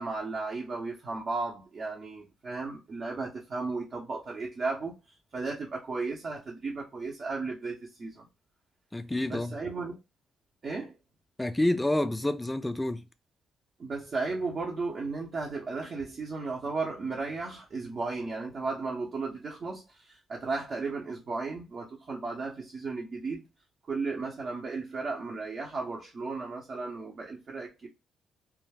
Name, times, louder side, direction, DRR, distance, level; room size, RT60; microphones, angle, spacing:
voice 1, 0.0-5.0 5.3-8.3 9.3-9.9 10.6-11.0 13.8-23.4 23.8-27.9, right 3 dB, 45° right, 0.8 m, -35 dB
voice 2, 8.9-9.6 11.4-13.0, left 1 dB, 10° left, 0.3 m, -28 dB
2.3 x 2.1 x 3.3 m
cardioid pair, 90°, 0 cm